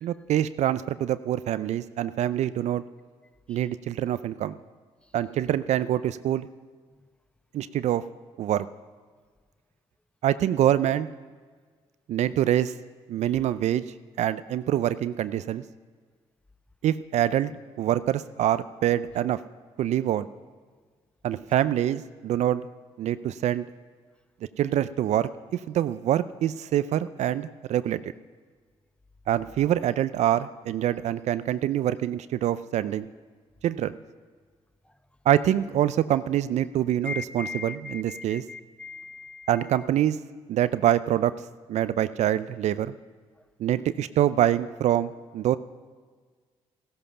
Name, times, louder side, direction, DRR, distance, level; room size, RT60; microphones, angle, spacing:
voice 1, 0.0-2.8 3.5-4.6 5.1-6.5 7.5-8.0 8.4-8.7 10.2-11.1 12.1-12.7 13.1-13.8 14.2-15.6 16.8-17.5 17.8-19.4 19.8-20.3 21.2-22.6 23.0-23.6 24.6-28.1 29.3-33.1 33.6-33.9 35.3-38.4 39.5-40.2 40.5-41.3 41.7-42.9 43.6-45.6, right 11 dB, 70° right, 14 dB, 0.5 m, -25 dB
voice 2, 37.0-39.9, left 4 dB, 10° left, 12 dB, 0.8 m, -39 dB
14.5 x 12.5 x 5.7 m, 1.5 s
supercardioid pair, 60°, 12 cm